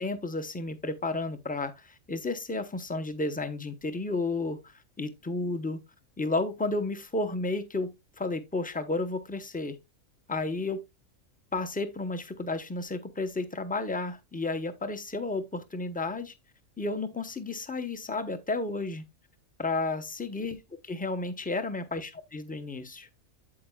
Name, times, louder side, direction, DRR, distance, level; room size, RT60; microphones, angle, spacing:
voice 1, 0.0-5.8 6.2-9.8 10.3-10.8 11.5-16.3 16.8-19.0 19.6-23.1, left 3 dB, 10° left, 0.6 m, -32 dB
8.7 x 7.8 x 2.3 m
omnidirectional pair, 1.4 m